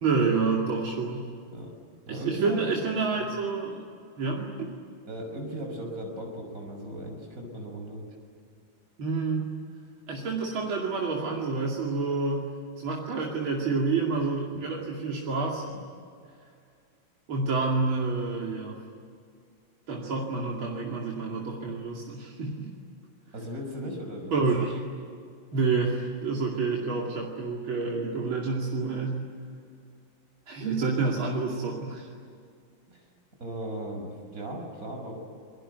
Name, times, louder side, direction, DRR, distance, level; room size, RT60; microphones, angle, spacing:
voice 1, 0.0-1.3 2.1-3.9 4.2-4.7 9.0-9.6 10.1-12.5 12.7-15.7 17.3-18.8 19.9-22.7 24.3-24.8 25.5-29.2 30.5-32.1, right 4 dB, 85° right, -2 dB, 3.4 m, -28 dB
voice 2, 2.1-2.7 3.2-3.3 5.0-8.0 23.3-24.3 32.9-33.0 33.4-35.2, equal, 40° right, 2 dB, 6.4 m, -37 dB
28.0 x 23.0 x 9.3 m, 2.3 s
omnidirectional pair, 2.2 m